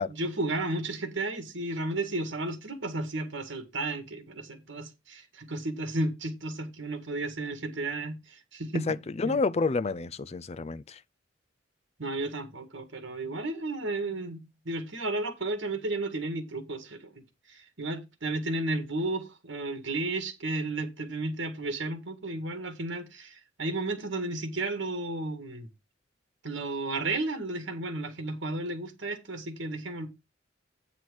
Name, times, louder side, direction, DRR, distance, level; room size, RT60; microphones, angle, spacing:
voice 1, 0.0-8.9 9.2-9.4 12.0-14.4 14.6-17.2 17.5-25.7 26.4-30.1, right 2 dB, 70° right, 1.8 m, -33 dB
voice 2, 8.9-11.0, left 4 dB, 35° left, 0.5 m, -29 dB
8.8 x 6.2 x 4.8 m
head